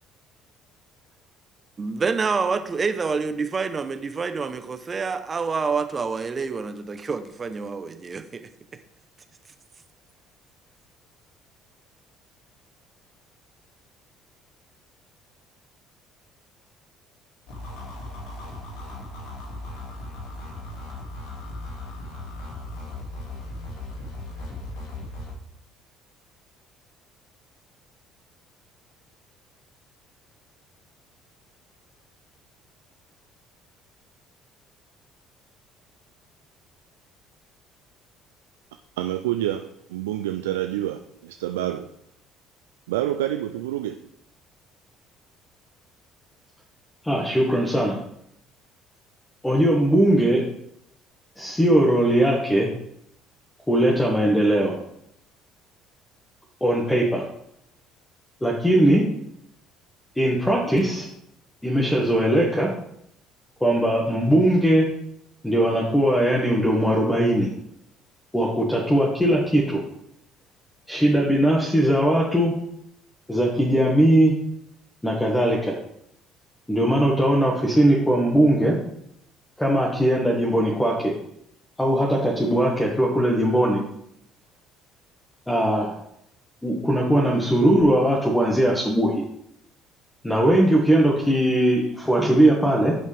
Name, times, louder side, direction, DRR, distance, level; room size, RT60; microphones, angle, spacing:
voice 1, 1.8-8.5, right 5 dB, 35° right, 0.8 m, -27 dB
sound 1, 17.5-25.3, left 2 dB, 75° left, 2.3 m, -37 dB
voice 2, 39.0-41.9 42.9-44.0, right 13 dB, 85° right, 0.4 m, -28 dB
voice 3, 47.0-48.0 49.4-50.4 51.4-52.7 53.7-54.7 56.6-57.2 58.4-59.0 60.2-61.1 61.6-62.7 63.6-64.9 65.4-67.5 68.3-69.8 70.9-72.5 73.3-74.3 75.0-75.7 76.7-78.8 79.6-81.1 81.8-83.8 85.5-85.9 86.6-89.1 90.2-93.0, right 1 dB, 10° left, 1.8 m, -20 dB
11.0 x 5.4 x 3.5 m
hypercardioid pair, 60°, 0 cm